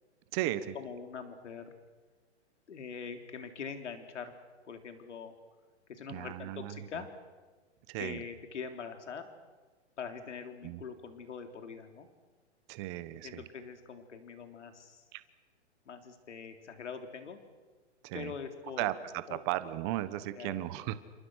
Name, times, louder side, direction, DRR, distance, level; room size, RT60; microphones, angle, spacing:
voice 1, 0.7-1.7 2.7-4.3 4.6-5.3 5.9-7.1 8.0-9.3 10.0-12.1 13.2-15.0 15.9-17.4 18.1-18.9 19.3-19.4 20.4-20.7, left 6 dB, 80° left, 6 dB, 3.7 m, -43 dB
voice 2, 6.1-6.8 7.9-8.2 10.6-10.8 12.7-13.4 15.1-15.2 18.0-18.3 18.8-20.9, right 16 dB, 25° right, 13 dB, 1.2 m, -35 dB
30.0 x 27.5 x 6.5 m, 1.3 s
hypercardioid pair, 160°, 35 cm